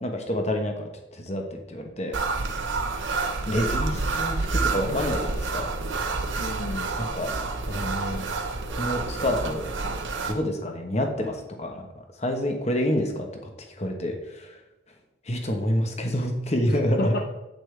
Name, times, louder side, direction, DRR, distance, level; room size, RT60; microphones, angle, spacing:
voice 1, 0.0-2.2 3.5-5.7 7.0-7.3 7.7-8.3 8.7-9.6 10.2-11.9 12.2-13.3 13.8-14.6 15.2-17.1, left 1 dB, 35° left, 3 dB, 1.2 m, -28 dB
sound 1, 2.1-10.3, right 3 dB, 80° right, 1.0 m, -28 dB
voice 2, 3.5-4.0 4.6-5.0 6.4-6.9 16.7-17.2, left 2 dB, 50° left, 3 dB, 0.6 m, -33 dB
8.6 x 8.2 x 3.4 m, 0.98 s
head